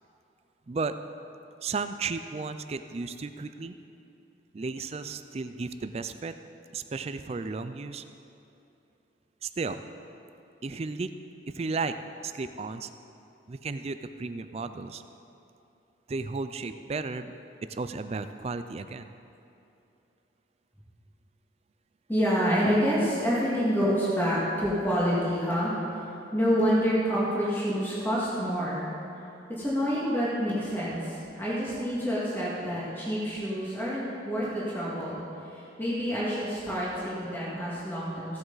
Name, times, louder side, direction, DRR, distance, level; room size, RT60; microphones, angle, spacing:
voice 1, 0.7-1.0 1.6-3.7 4.5-6.3 6.7-8.0 9.4-9.8 10.6-11.1 11.5-11.9 12.2-12.9 13.5-15.0 16.1-17.3 17.7-19.1, right 4 dB, 35° right, 10 dB, 0.4 m, -34 dB
voice 2, 22.1-26.1 26.3-28.9 29.5-35.2 35.4-38.4, equal, 10° left, -8 dB, 1.9 m, -27 dB
16.0 x 7.8 x 4.0 m, 2.8 s
head